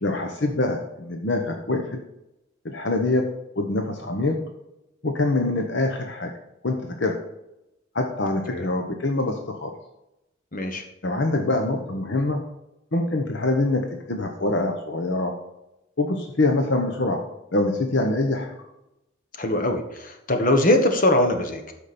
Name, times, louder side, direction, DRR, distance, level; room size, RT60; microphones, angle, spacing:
voice 1, 0.0-2.0 2.6-3.3 3.6-4.4 5.0-6.3 6.6-7.2 7.9-9.7 11.0-12.4 12.9-15.3 16.0-17.2 17.5-18.5, left 2 dB, 60° left, 3 dB, 1.0 m, -24 dB
voice 2, 10.5-10.8 19.4-21.7, left 1 dB, 40° left, 5 dB, 1.3 m, -22 dB
13.0 x 5.1 x 4.3 m, 0.89 s
head